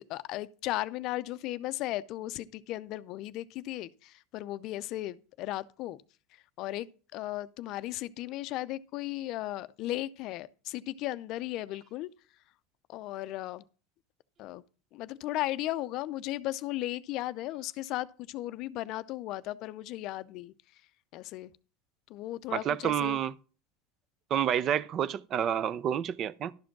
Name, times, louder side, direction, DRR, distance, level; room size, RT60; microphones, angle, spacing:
voice 1, 0.0-6.0 6.6-6.9 7.1-12.1 12.9-13.6 14.4-14.6 14.9-20.8 21.1-21.5 22.1-23.2, left 15 dB, 55° left, 0.5 m, -36 dB
voice 2, 22.5-23.3 24.3-26.5, right 9 dB, 40° right, 0.5 m, -29 dB
12.0 x 5.1 x 5.9 m
supercardioid pair, 125°, 0 cm